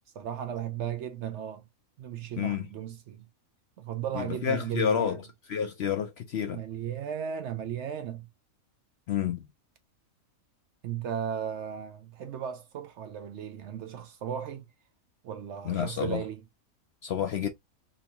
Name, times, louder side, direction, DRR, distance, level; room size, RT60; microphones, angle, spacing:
voice 1, 0.2-1.6 2.0-3.3 3.8-5.2 6.5-8.3 10.8-14.7 15.2-16.4, right 9 dB, 65° right, 0.7 m, -35 dB
voice 2, 4.1-5.2 5.5-6.6 9.1-9.5 15.6-16.2 17.0-17.5, left 8 dB, 65° left, 0.7 m, -29 dB
3.8 x 2.5 x 2.7 m
omnidirectional pair, 1.5 m